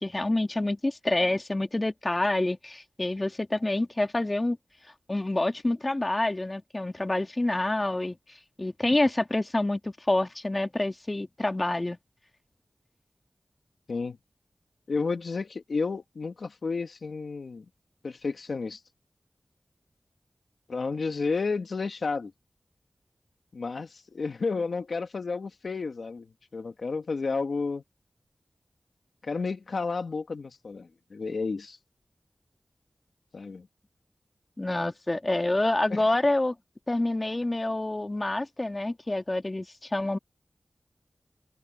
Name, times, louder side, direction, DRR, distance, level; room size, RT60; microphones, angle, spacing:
voice 1, 0.0-4.6 5.1-8.2 8.6-12.0 34.6-36.6 36.9-40.2, left 2 dB, 30° left, 1.9 m, -27 dB
voice 2, 14.9-17.7 18.0-18.8 20.7-22.3 23.5-26.3 26.5-27.8 29.2-31.8 33.3-33.7 35.9-36.0, left 4 dB, 85° left, 1.7 m, -31 dB
wide cardioid pair, 60°, 0 cm